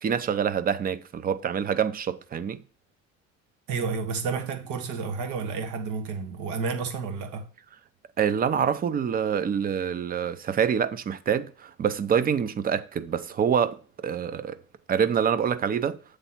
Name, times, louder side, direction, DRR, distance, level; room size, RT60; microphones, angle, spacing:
voice 1, 0.0-2.6 8.2-14.6 14.9-16.0, right 7 dB, 30° right, 0.6 m, -26 dB
voice 2, 3.7-7.5, right 5 dB, 80° right, 1.4 m, -31 dB
8.1 x 3.4 x 5.7 m
cardioid pair, 125°, 30 cm